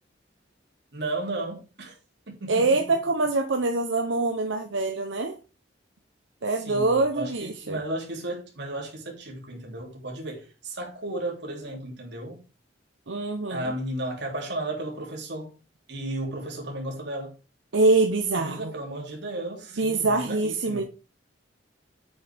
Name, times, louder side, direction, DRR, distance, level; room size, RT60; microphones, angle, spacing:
voice 1, 0.9-2.0 2.3-2.8 6.5-12.4 13.5-15.5 15.9-17.3 18.3-20.8, right 1 dB, 65° right, 3.2 m, -34 dB
voice 2, 2.5-5.4 6.4-7.8 13.1-13.7 17.7-18.7 19.8-20.8, right 3 dB, 90° right, 0.9 m, -24 dB
7.8 x 7.1 x 3.5 m
head